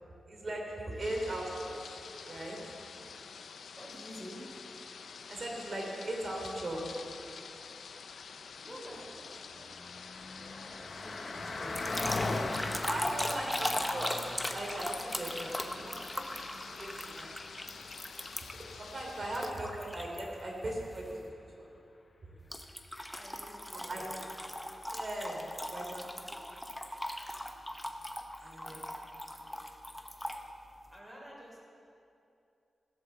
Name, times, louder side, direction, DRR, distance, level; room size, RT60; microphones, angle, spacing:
voice 1, 0.3-1.9 2.2-2.6 5.3-6.9 7.7-7.8 12.9-14.1 14.5-15.5 15.8-17.4 18.7-21.7 22.3-22.5 23.9-24.0 24.8-26.4, right 1 dB, 45° right, -1 dB, 3.1 m, -39 dB
sound 1, 1.0-19.5, left 5 dB, 80° left, 0.6 m, -48 dB
voice 2, 3.8-4.4 8.6-12.6 13.1-13.8 14.8-15.3 15.6-15.8 23.1-24.2 27.6-29.9 30.2-30.3 30.9-31.6, equal, 15° right, -3 dB, 3.9 m, -51 dB
Car passing by, 9.1-20.8, left 2 dB, 40° left, 0.9 m, -41 dB
sound 2, 11.7-18.7 19.3-20.2 20.7-21.0 22.5-30.4, left 1 dB, 5° left, 0.8 m, -39 dB
15.5 x 8.1 x 7.1 m, 2.6 s
wide cardioid pair, 125°, 0 cm